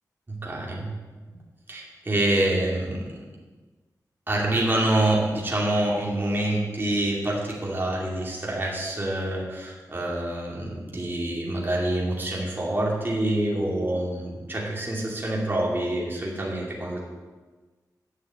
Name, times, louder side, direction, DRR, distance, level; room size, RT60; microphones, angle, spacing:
voice 1, 0.3-0.9 1.3-1.4 1.7-3.1 4.3-17.0, right 1 dB, 30° right, -3 dB, 2.4 m, -26 dB
9.2 x 6.6 x 8.6 m, 1.3 s
wide cardioid pair, 120°, 7 cm